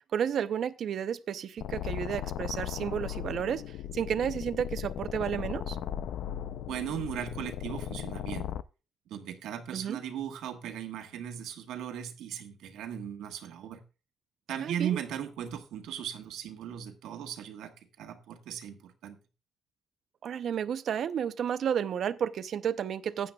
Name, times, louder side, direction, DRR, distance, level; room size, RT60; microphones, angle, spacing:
voice 1, 0.1-5.8 9.7-10.0 14.6-15.0 20.2-23.3, right 8 dB, 65° right, 0.7 m, -32 dB
sound 1, 1.6-8.6, left 11 dB, 80° left, 0.5 m, -37 dB
voice 2, 6.6-8.5 9.1-13.8 14.5-19.2, right 9 dB, 85° right, 1.4 m, -37 dB
15.5 x 9.1 x 2.3 m
cardioid pair, 90°, 0 cm